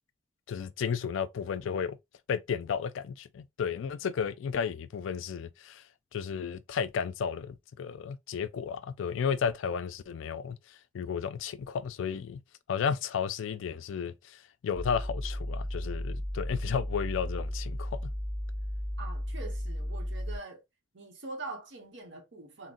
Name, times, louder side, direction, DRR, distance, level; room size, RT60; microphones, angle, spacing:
voice 1, 0.5-2.0 2.3-5.8 6.1-10.6 10.9-12.4 12.7-18.0, left 7 dB, 75° left, 0.3 m, -33 dB
sound 1, 14.7-20.4, equal, 30° right, 1.8 m, -34 dB
voice 2, 19.0-20.6 20.9-22.7, right 3 dB, 65° right, 0.9 m, -43 dB
3.7 x 2.1 x 2.5 m
head